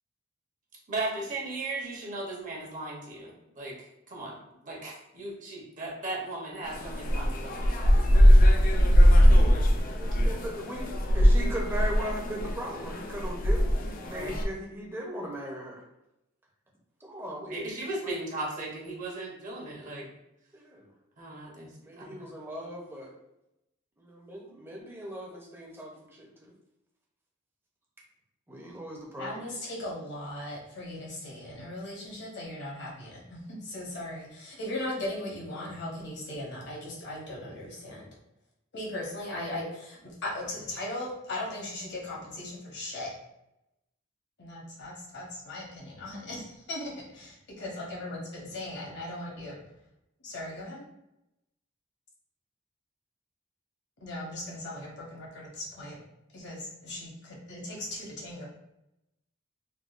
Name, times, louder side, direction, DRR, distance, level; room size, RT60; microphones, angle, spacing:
voice 1, 0.9-4.4 4.6-8.3 8.9-9.2 14.1-14.3 17.5-20.1 21.2-22.2, right 2 dB, 40° right, -3 dB, 0.8 m, -37 dB
sound 1, 6.7-14.4, equal, 45° left, 0.4 m, -21 dB
voice 2, 9.9-15.8 17.0-17.7 18.0-18.2 20.5-20.9 21.8-23.1 24.0-26.5 28.5-29.3, equal, 10° right, -2 dB, 0.6 m, -38 dB
voice 3, 29.2-38.0 38.7-43.1 44.4-49.6 50.2-50.8 54.0-56.0 56.3-58.5, left 1 dB, 60° left, -3 dB, 1.0 m, -38 dB
3.6 x 2.3 x 2.4 m, 0.88 s
head